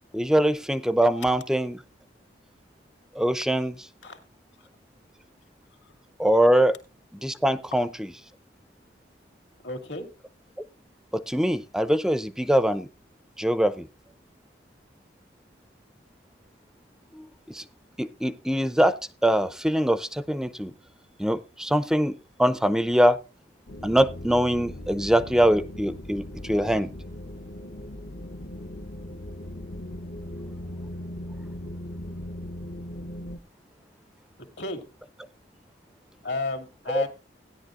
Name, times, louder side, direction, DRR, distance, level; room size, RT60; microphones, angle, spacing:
voice 1, 0.1-1.8 3.2-3.7 6.2-6.7 7.1-8.1 11.1-12.9 13.4-13.9 17.2-17.6 18.0-20.7 21.2-23.2 23.8-26.9 36.9-37.0, equal, 5° right, 0.5 m, -23 dB
voice 2, 9.6-10.1 34.6-34.8 36.2-37.1, left 3 dB, 75° left, 2.3 m, -31 dB
sound 1, 23.7-33.4, left 1 dB, 60° left, 0.9 m, -38 dB
16.0 x 10.5 x 2.5 m
head